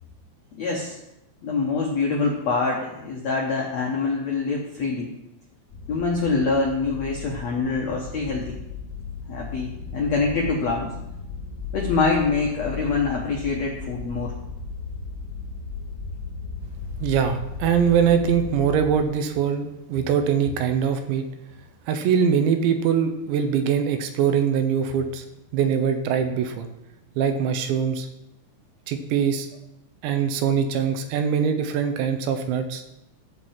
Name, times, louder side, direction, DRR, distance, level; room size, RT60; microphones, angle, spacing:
voice 1, 0.6-1.0 1.4-5.1 5.9-8.6 9.3-10.9 11.7-14.3, left 4 dB, 90° left, -1 dB, 1.5 m, -25 dB
sound 1, 5.7-19.0, left 5 dB, 45° left, 3.1 m, -35 dB
voice 2, 17.0-21.3 21.9-25.2 25.5-26.7 27.2-28.1 28.9-29.5 30.0-32.9, right 7 dB, 75° right, 7 dB, 3.0 m, -22 dB
14.5 x 4.8 x 7.4 m, 0.90 s
omnidirectional pair, 5.4 m